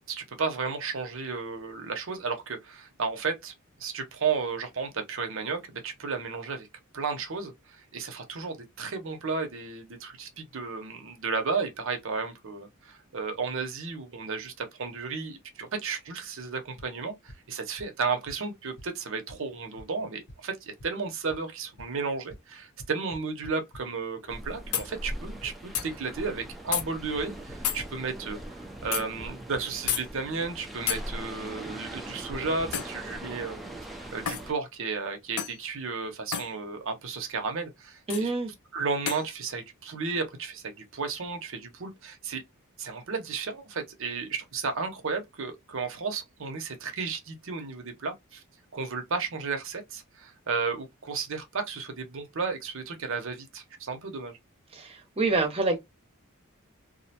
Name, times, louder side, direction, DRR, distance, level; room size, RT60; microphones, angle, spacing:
voice 1, 0.1-6.7 6.9-33.7 34.1-38.3 38.7-42.4 42.8-48.4 48.7-54.4, right 4 dB, 60° right, 0.7 m, -33 dB
sound 1, 16.8-16.9 17.3-17.4 17.8-17.9 18.3-18.4 18.8-18.9 19.3-19.4 19.8-19.9 20.3-20.4 20.8-20.9 21.3-21.4 21.8-21.9 22.3-22.4 22.8-23.8 24.8-25.9 26.8-26.9 27.2-27.5 27.8-27.9 28.8-28.9 29.2-29.3 29.5-29.6 29.8-29.9, equal, 55° left, 0.8 m, -44 dB
sound 2, 24.2-24.3 24.7-24.9 25.7-25.9 26.7-26.8 27.6-27.8 28.9-29.0 29.9-30.0 30.9-31.0 32.7-33.0 34.3-34.5 35.4-35.6 36.3-36.5 38.1-38.3 39.1-39.3, left 9 dB, 90° left, 0.5 m, -30 dB
sound 3, 24.3-34.5, right 1 dB, ahead, 0.4 m, -41 dB
voice 2, 38.1-38.5 54.7-55.8, right 3 dB, 25° right, 0.7 m, -27 dB
2.5 x 2.1 x 2.8 m
head